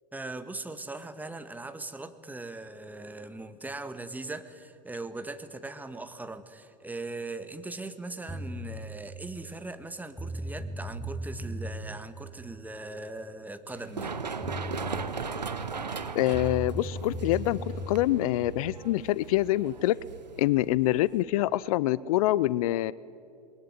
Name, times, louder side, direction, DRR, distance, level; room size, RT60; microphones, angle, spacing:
voice 1, 0.1-14.1, right 2 dB, 10° right, 10 dB, 1.7 m, -40 dB
sound 1, 8.3-8.8 9.8-9.9 10.2-11.8 14.1-14.2 14.4-15.1 16.3-18.1, equal, 10° left, 2.4 m, -36 dB
Run, 13.7-21.2, right 5 dB, 85° right, 1.4 m, -38 dB
voice 2, 16.1-17.6 17.9-20.0 20.4-22.9, left 15 dB, 60° left, 20 dB, 0.6 m, -25 dB
27.5 x 21.5 x 9.7 m, 2.6 s
figure-of-eight pair, 90°, 21 cm